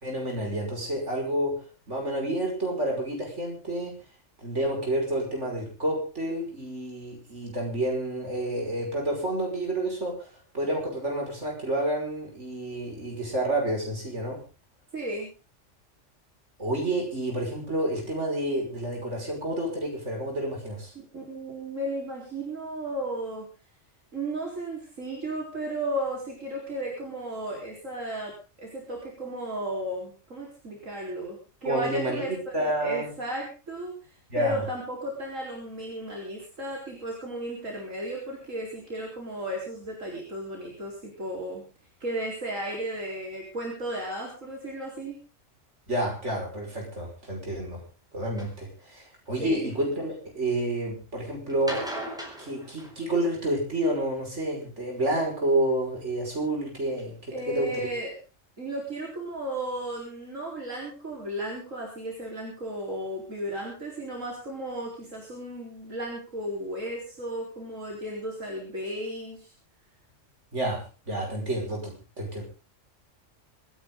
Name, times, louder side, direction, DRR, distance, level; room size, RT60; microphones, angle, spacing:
voice 1, 0.0-1.6 1.9-3.9 4.4-14.4 16.6-20.9 31.6-32.3 32.5-33.1 34.3-34.6 45.9-47.8 48.1-51.8 52.4-57.9 70.5-72.4, right 1 dB, 65° right, 0 dB, 6.1 m, -29 dB
voice 2, 14.9-15.3 21.1-23.5 24.1-28.3 28.6-33.9 34.3-41.6 42.0-45.2 49.4-49.7 57.3-58.1 58.6-69.5, right 1 dB, 85° right, -2 dB, 4.8 m, -34 dB
sound 1, 48.4-48.5 49.3-49.9 51.5-53.5 55.0-55.6 56.3-56.4 57.0-57.1 57.4-57.5 57.7-57.8, equal, 5° right, 4.3 m, -38 dB
25.5 x 10.5 x 3.9 m, 0.34 s
omnidirectional pair, 1.3 m